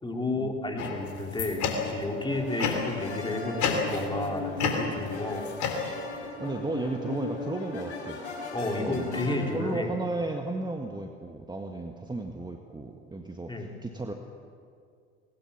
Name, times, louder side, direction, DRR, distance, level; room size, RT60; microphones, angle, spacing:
voice 1, 0.0-5.4 8.5-9.9 13.5-13.7, left 2 dB, 15° left, 1 dB, 3.9 m, -32 dB
sound 1, 0.8-2.1 2.6-3.1 3.6-4.3 4.6-6.3, left 6 dB, 55° left, 3.5 m, -31 dB
sound 2, 1.5-9.8, left 2 dB, 80° left, 5.1 m, -37 dB
voice 2, 6.4-8.2 8.8-9.1 9.5-14.1, right 2 dB, 10° right, 3 dB, 1.7 m, -34 dB
21.0 x 20.0 x 7.3 m, 2.2 s
hypercardioid pair, 75°, 35 cm